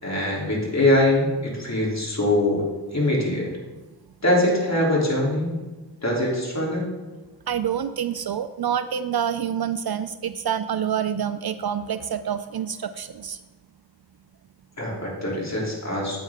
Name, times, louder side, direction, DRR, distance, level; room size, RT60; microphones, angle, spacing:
voice 1, 0.0-2.6 2.9-3.5 4.2-5.5 6.0-6.9 14.8-16.2, left 1 dB, 35° left, -4 dB, 3.2 m, -23 dB
voice 2, 7.5-13.4, right 8 dB, 55° right, 12 dB, 0.5 m, -27 dB
8.8 x 8.4 x 3.6 m, 1.2 s
cardioid pair, 55°, 45 cm